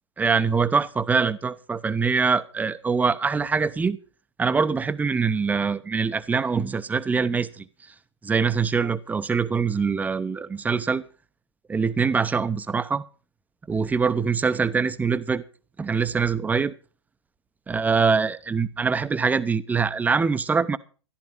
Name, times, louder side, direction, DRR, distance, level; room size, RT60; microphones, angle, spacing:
voice 1, 0.2-4.0 4.4-7.6 8.2-11.0 11.7-13.0 13.7-15.4 15.8-16.7 17.7-20.8, right 5 dB, 10° right, 0.8 m, -23 dB
14.0 x 11.5 x 5.4 m
figure-of-eight pair, 105°, 15 cm